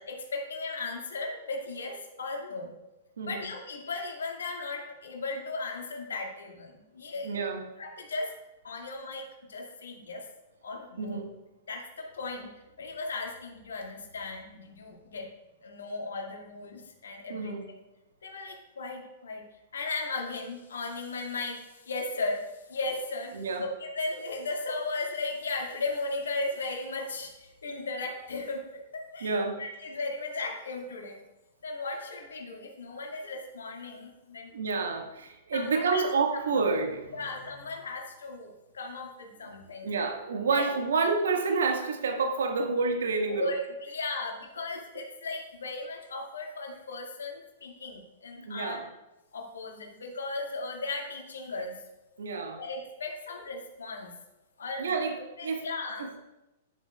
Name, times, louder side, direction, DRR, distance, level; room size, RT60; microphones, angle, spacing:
voice 1, 0.1-2.7 3.3-7.4 7.8-8.3 8.6-10.3 10.6-11.2 11.7-15.3 15.6-17.5 18.2-19.5 19.7-28.7 28.9-31.2 31.6-34.5 35.5-36.1 36.5-36.6 37.1-39.9 40.5-40.7 40.9-41.1 43.3-48.8 49.3-51.8 52.6-54.1 54.6-54.9 55.2-56.1, left 3 dB, 70° left, 1 dB, 2.0 m, -36 dB
voice 2, 7.2-7.7 11.0-11.3 17.3-17.6 23.3-23.6 29.2-29.6 34.5-37.0 39.8-43.5 48.4-48.9 52.2-52.6 54.8-55.7 56.0-56.2, right 4 dB, 65° right, 2 dB, 1.6 m, -29 dB
11.0 x 10.5 x 2.4 m, 0.96 s
figure-of-eight pair, 105°, 0 cm